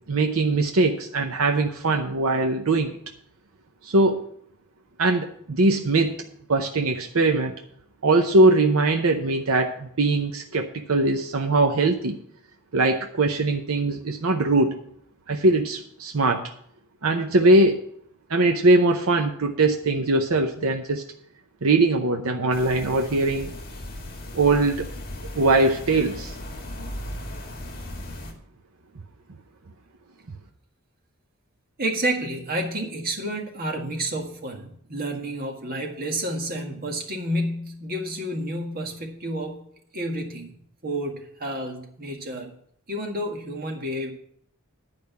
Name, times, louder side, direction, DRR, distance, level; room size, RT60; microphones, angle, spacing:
voice 1, 0.1-3.0 3.8-4.3 5.0-6.2 6.5-7.5 8.0-12.2 12.7-14.8 15.3-16.4 17.0-17.8 18.3-21.0 21.6-23.5 24.3-24.8 25.4-26.3, right 2 dB, 70° right, 4 dB, 0.8 m, -21 dB
sound 1, 22.5-28.3, left 1 dB, 45° left, 2.0 m, -37 dB
voice 2, 31.8-39.6 39.9-40.5 40.8-42.5 42.9-44.1, right 1 dB, 45° right, 2 dB, 1.8 m, -30 dB
10.5 x 5.1 x 8.1 m, 0.67 s
head